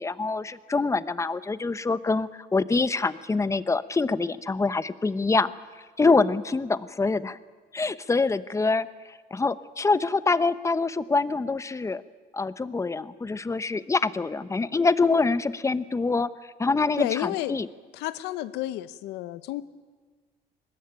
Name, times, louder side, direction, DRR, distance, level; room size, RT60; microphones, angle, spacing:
voice 1, 0.0-5.5 6.0-7.4 7.7-12.0 12.3-16.3 16.6-17.7, left 3 dB, 15° left, 15 dB, 0.9 m, -25 dB
voice 2, 17.0-17.5 17.9-19.6, left 15 dB, 90° left, 15 dB, 1.0 m, -31 dB
23.5 x 20.0 x 9.0 m, 1.4 s
cardioid pair, 110°, 17 cm